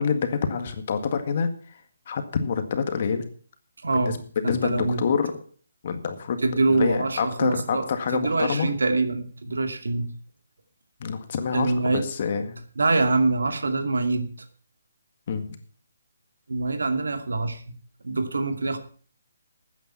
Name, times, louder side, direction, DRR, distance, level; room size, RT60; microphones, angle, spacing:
voice 1, 0.0-1.5 2.1-3.3 3.9-5.3 5.8-6.4 6.7-8.7 11.0-12.6 15.3-15.6, left 6 dB, 40° left, 7 dB, 1.8 m, -27 dB
voice 2, 3.8-4.2 4.4-5.0 6.4-7.9 8.1-10.1 11.5-12.1 12.8-14.3 16.5-17.6 18.0-18.8, right 3 dB, 90° right, 6 dB, 2.5 m, -24 dB
13.5 x 9.2 x 5.7 m, 0.43 s
hypercardioid pair, 170°, 0 cm